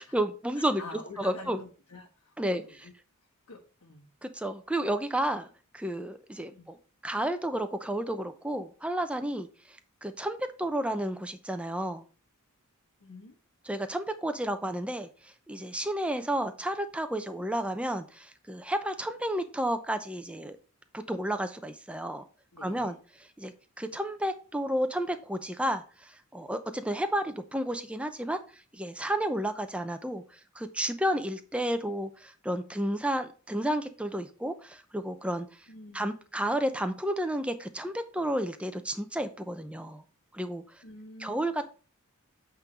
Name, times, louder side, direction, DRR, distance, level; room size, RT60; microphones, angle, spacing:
voice 1, 0.0-0.8 1.2-1.6 2.4-2.6 4.2-5.5 5.7-6.8 7.0-9.5 10.0-12.0 13.7-15.1 15.5-20.6 20.9-22.2 22.6-23.0 23.4-28.4 28.7-30.2 30.6-35.5 35.9-40.0 40.3-40.6 41.2-41.7, right 1 dB, 5° right, 8 dB, 0.7 m, -31 dB
voice 2, 0.5-2.9 3.5-4.1 6.5-6.6 13.0-13.3 22.5-22.9 35.7-36.1 40.8-41.5, left 3 dB, 85° left, -5 dB, 1.6 m, -47 dB
8.7 x 3.8 x 5.3 m, 0.36 s
head